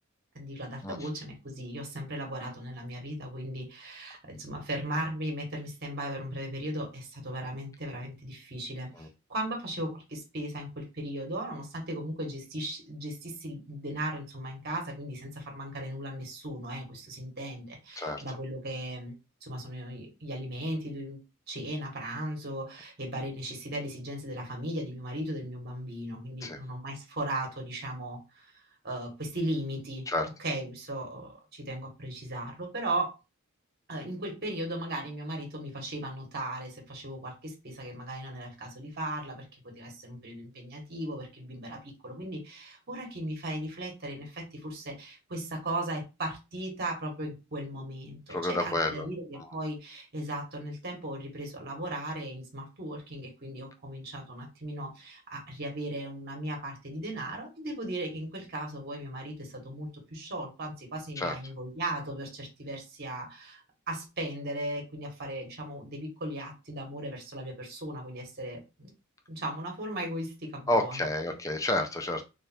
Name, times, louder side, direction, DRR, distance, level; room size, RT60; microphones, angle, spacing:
voice 1, 0.3-19.1 19.4-21.2 21.5-30.0 30.4-33.1 33.9-63.6 63.9-68.9 69.3-71.1, right 1 dB, 45° right, 1 dB, 1.3 m, -37 dB
voice 2, 48.3-49.1 49.4-49.5 61.2-61.3 70.7-72.2, left 1 dB, 15° left, 5 dB, 0.5 m, -30 dB
3.3 x 2.5 x 4.3 m, 0.28 s
head